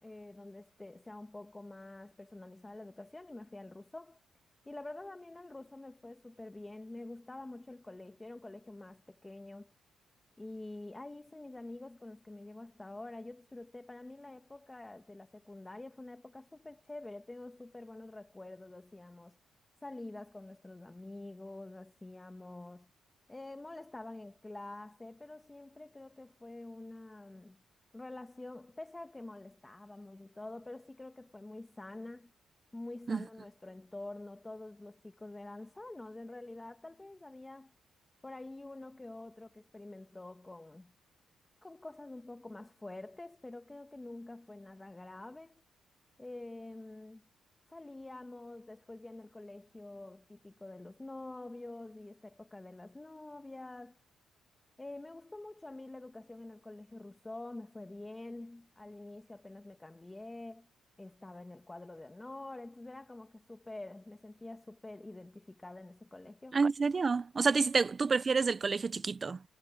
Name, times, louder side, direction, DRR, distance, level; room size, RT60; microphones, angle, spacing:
voice 1, 0.0-4.2 4.6-9.7 10.4-19.4 19.8-22.9 23.3-27.6 27.9-32.3 32.7-37.7 38.2-40.9 41.6-45.6 46.2-47.2 47.7-54.0 54.8-60.7 61.0-66.6, left 2 dB, 15° left, 1.4 m, -47 dB
voice 2, 66.5-69.4, right 4 dB, 30° right, 0.5 m, -29 dB
cardioid pair, 110°, 0 cm